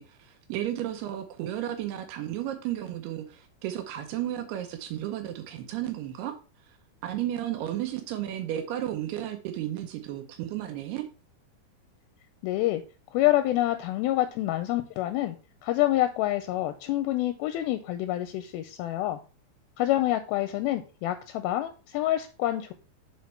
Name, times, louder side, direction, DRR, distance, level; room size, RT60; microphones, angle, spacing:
voice 1, 0.0-6.3 7.0-11.0, right 12 dB, 80° right, 6 dB, 2.8 m, -33 dB
voice 2, 12.4-12.8 13.1-15.4 15.6-19.2 19.8-22.7, left 15 dB, 85° left, 9 dB, 2.3 m, -27 dB
7.3 x 4.3 x 4.4 m, 0.34 s
omnidirectional pair, 4.6 m